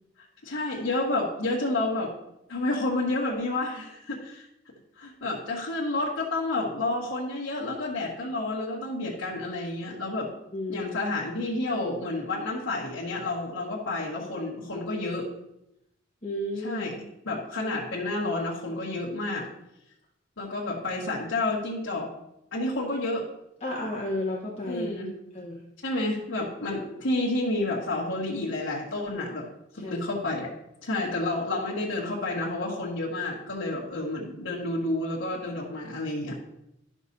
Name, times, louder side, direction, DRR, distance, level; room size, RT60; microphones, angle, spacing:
voice 1, 0.4-2.1 2.5-4.4 5.0-10.3 10.7-15.3 16.6-19.5 20.4-22.1 22.5-23.3 24.7-25.1 25.8-29.5 29.7-30.5 30.8-36.4, left 2 dB, 90° left, -7 dB, 1.7 m, -30 dB
voice 2, 10.5-10.9 16.2-16.9 23.6-24.9 25.3-25.6 29.8-30.0 33.6-33.7, left 1 dB, 30° left, -5 dB, 1.3 m, -32 dB
12.5 x 6.1 x 2.7 m, 0.83 s
head